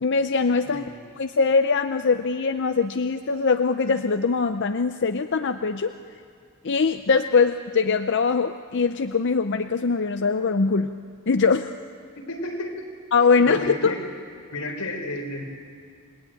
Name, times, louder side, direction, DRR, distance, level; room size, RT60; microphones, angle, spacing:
voice 1, 0.0-0.8 1.2-5.9 6.6-10.9 11.3-11.7 13.1-14.0, left 4 dB, 55° left, 8 dB, 0.6 m, -22 dB
voice 2, 0.7-1.0 12.2-12.9 13.4-14.0 14.5-15.4, left 1 dB, 90° left, 3 dB, 4.3 m, -32 dB
29.5 x 20.0 x 9.0 m, 2.2 s
head